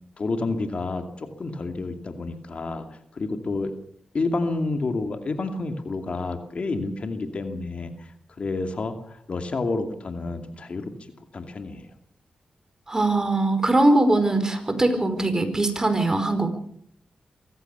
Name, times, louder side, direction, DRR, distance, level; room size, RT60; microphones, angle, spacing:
voice 1, 0.2-2.9 3.1-3.7 4.1-8.1 8.4-10.9 11.3-11.9, left 3 dB, 55° left, 7 dB, 2.6 m, -29 dB
voice 2, 12.9-16.5, right 2 dB, 25° right, 8 dB, 4.8 m, -21 dB
24.0 x 15.5 x 6.9 m, 0.66 s
cardioid pair, 55°, 2 cm